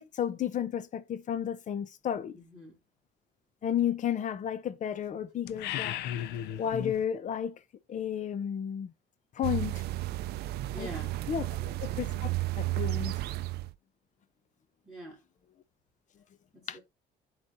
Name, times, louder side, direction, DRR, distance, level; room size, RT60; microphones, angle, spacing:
voice 1, 0.0-2.4 3.6-6.0 6.6-7.6 7.9-8.9 9.4-9.8 10.8-10.9 11.3-11.5 11.8-12.3 12.6-13.2 16.7-16.8, left 9 dB, 45° left, 0.7 m, -32 dB
voice 2, 2.3-2.8 10.7-11.1 11.4-11.6 14.8-15.2 16.5-16.8, right 1 dB, 5° left, 3.3 m, -45 dB
sound 1, 5.5-7.0, left 11 dB, 80° left, 0.6 m, -35 dB
sound 2, 9.4-13.7, right 17 dB, 70° right, 0.4 m, -33 dB
11.5 x 4.0 x 2.6 m
cardioid pair, 110°, 17 cm